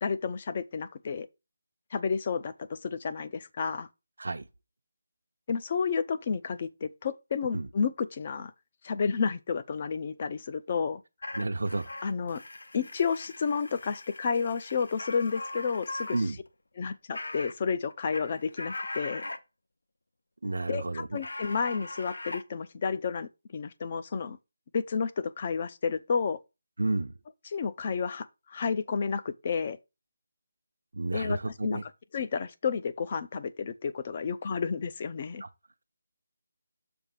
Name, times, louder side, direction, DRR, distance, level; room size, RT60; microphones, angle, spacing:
voice 1, 0.0-1.3 1.9-3.9 5.5-8.5 8.8-11.0 12.0-12.4 12.7-16.2 16.8-19.2 20.7-24.4 24.7-26.4 27.4-29.8 31.1-35.4, left 5 dB, 30° left, 0.5 m, -31 dB
sound 1, 11.2-16.2 16.5-16.6 17.1-17.5 17.9-19.4 21.2-22.4, left 2 dB, 85° left, 0.9 m, -40 dB
voice 2, 11.4-11.9 16.1-16.4 20.4-21.1 26.8-27.1 30.9-31.8 35.4-35.5, right 2 dB, 80° right, 0.7 m, -31 dB
7.2 x 3.4 x 5.8 m
figure-of-eight pair, 175°, 0 cm